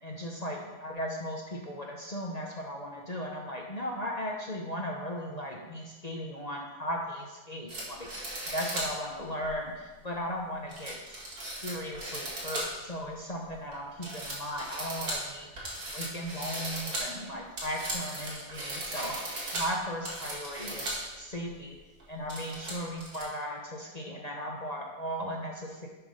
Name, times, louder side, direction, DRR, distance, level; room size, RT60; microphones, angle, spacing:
voice 1, 0.0-8.1 8.5-11.2 11.6-15.5 15.9-19.1 19.5-21.8 22.1-25.9, equal, 30° left, -2 dB, 0.9 m, -37 dB
sound 1, 7.7-8.9 9.4-9.5 10.7-12.9 13.3-13.8 14.0-21.1 21.4-21.5 22.0-23.3, right 1 dB, 90° right, 2.3 m, -37 dB
7.1 x 5.4 x 5.3 m, 1.2 s
omnidirectional pair, 1.5 m